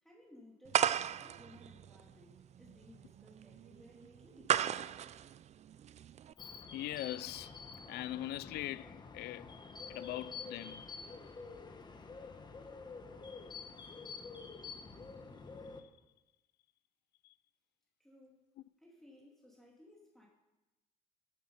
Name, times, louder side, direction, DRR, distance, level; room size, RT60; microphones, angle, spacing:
voice 1, 0.0-4.6 18.0-18.4 18.8-20.3, left 1 dB, ahead, 2.8 m, -60 dB
sound 1, 0.7-6.3, right 9 dB, 40° right, 0.4 m, -35 dB
sound 2, 6.4-15.8, left 4 dB, 25° left, 1.4 m, -48 dB
voice 2, 6.7-7.6 7.9-9.6 9.9-10.9 15.7-15.9 17.2-17.3 18.6-18.7, left 15 dB, 75° left, 0.5 m, -42 dB
14.5 x 10.5 x 5.6 m
cardioid pair, 110°, 17 cm